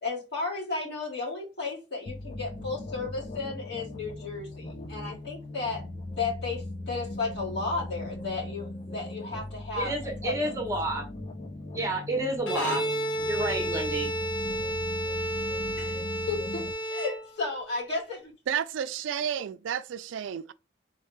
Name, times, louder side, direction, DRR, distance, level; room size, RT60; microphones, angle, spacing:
voice 1, 0.0-5.8 6.2-9.9 10.2-10.6 15.8-18.3, left 4 dB, 60° left, 2.1 m, -34 dB
sound 1, 2.1-16.7, left 2 dB, 30° left, 0.5 m, -39 dB
voice 2, 9.8-11.0 11.7-12.8 13.2-14.1, right 2 dB, 15° right, 1.0 m, -30 dB
Bowed string instrument, 12.4-17.6, right 1 dB, 85° left, 1.2 m, -31 dB
voice 3, 18.5-20.5, right 8 dB, 80° right, 0.3 m, -31 dB
3.8 x 3.3 x 3.2 m
head